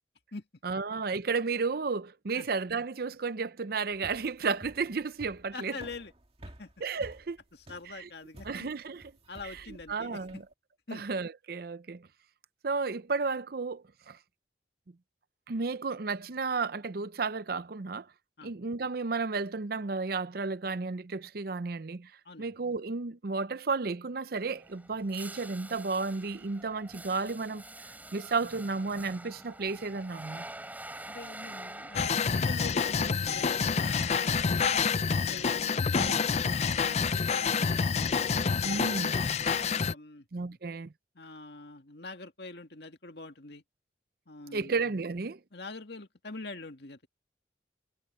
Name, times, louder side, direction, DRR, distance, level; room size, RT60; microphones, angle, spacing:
voice 1, 0.6-5.7 6.8-7.4 7.9-8.1 8.4-9.1 9.4-9.6 9.9-10.4 10.9-12.1 12.6-14.2 15.5-18.1 18.4-22.1 22.4-27.6 28.1-30.4 36.0-36.2 38.6-39.2 40.3-40.9 44.5-45.4, right 4 dB, 55° right, 0.6 m, -33 dB
sound 1, 3.9-10.5, right 1 dB, 35° right, 1.9 m, -51 dB
voice 2, 5.5-6.1 6.6-6.7 7.5-8.7 9.3-10.4 10.9-11.0 18.4-18.5 22.2-22.5 31.1-34.6 35.2-36.1 36.4-37.8 39.3-40.6 41.1-43.6 44.3-44.8 45.5-47.1, left 3 dB, 65° left, 2.2 m, -45 dB
sound 2, 24.5-34.4, right 1 dB, 10° right, 5.1 m, -47 dB
sound 3, 31.9-39.9, left 5 dB, 35° left, 0.5 m, -28 dB
head